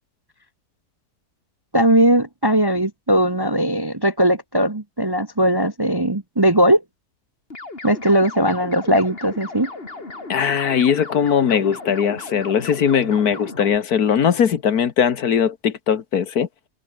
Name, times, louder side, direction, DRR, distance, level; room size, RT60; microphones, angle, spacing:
voice 1, 1.7-6.8 7.8-9.7, right 1 dB, 15° right, 0.9 m, -18 dB
sound 1, 7.5-13.8, left 3 dB, 35° left, 3.2 m, -36 dB
voice 2, 10.3-16.5, left 7 dB, 65° left, 1.7 m, -19 dB
omnidirectional pair, 1.8 m